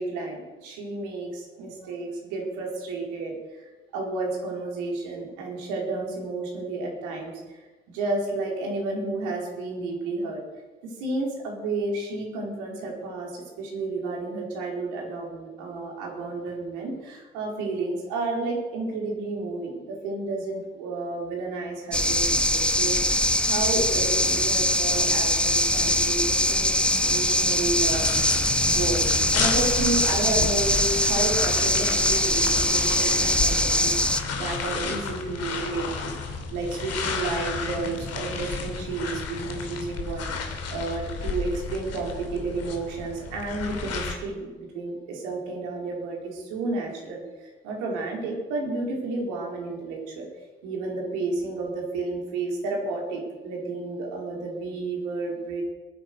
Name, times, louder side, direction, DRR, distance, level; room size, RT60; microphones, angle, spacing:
voice 1, 0.0-10.4 10.8-28.1 28.7-40.3 40.7-50.3 50.6-55.6, right 3 dB, 65° right, 0 dB, 4.2 m, -31 dB
sound 1, 21.9-34.2, left 1 dB, 5° left, 1.2 m, -22 dB
sound 2, 27.9-44.1, left 4 dB, 50° left, 2.7 m, -32 dB
21.0 x 9.5 x 6.4 m, 1.3 s
figure-of-eight pair, 45°, 33 cm